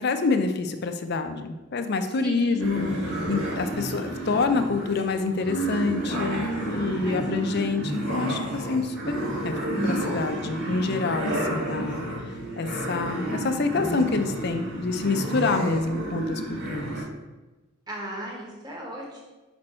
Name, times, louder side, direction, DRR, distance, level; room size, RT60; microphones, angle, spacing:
voice 1, 0.0-2.9 3.3-9.5 9.8-12.0 12.6-16.9, left 4 dB, 55° left, 8 dB, 0.5 m, -27 dB
voice 2, 2.2-2.7 7.0-7.2 7.8-7.9 17.9-19.2, equal, 20° right, -2 dB, 1.3 m, -36 dB
sound 1, 2.6-17.0, right 1 dB, 60° right, 2.1 m, -30 dB
5.3 x 4.3 x 4.3 m, 1.1 s
head